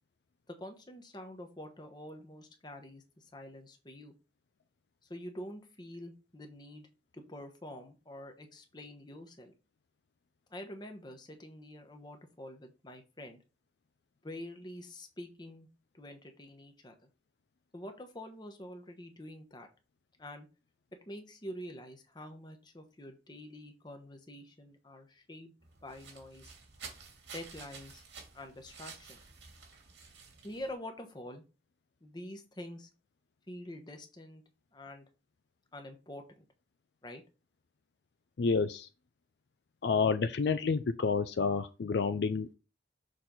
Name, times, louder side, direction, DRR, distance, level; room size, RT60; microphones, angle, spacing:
voice 1, 0.5-4.1 5.0-6.9 7.1-9.5 10.5-13.4 14.2-15.7 15.9-17.1 17.7-19.7 20.2-20.5 21.1-25.5 25.8-26.5 27.3-28.0 28.3-29.2 30.4-31.4 32.0-32.9 33.5-34.4 34.7-35.1 35.7-36.5 37.0-37.2, left 1 dB, 25° left, 1.1 m, -46 dB
sound 1, 25.6-30.7, right 5 dB, 80° right, 2.1 m, -51 dB
voice 2, 38.4-38.9 39.8-42.5, left 5 dB, 65° left, 0.4 m, -29 dB
6.7 x 4.1 x 3.8 m
head